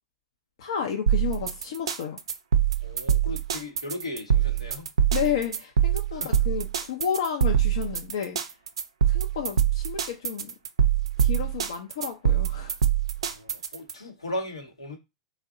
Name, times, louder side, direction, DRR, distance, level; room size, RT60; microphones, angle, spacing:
voice 1, 0.6-2.2 5.1-8.4 9.1-10.5 11.2-12.8, left 8 dB, 65° left, 0.5 m, -31 dB
sound 1, 1.1-13.9, right 9 dB, 75° right, 0.4 m, -24 dB
voice 2, 2.8-4.9 6.1-6.4 13.2-15.0, left 1 dB, 90° left, 0.9 m, -37 dB
2.7 x 2.1 x 3.6 m
figure-of-eight pair, 90°, 3 cm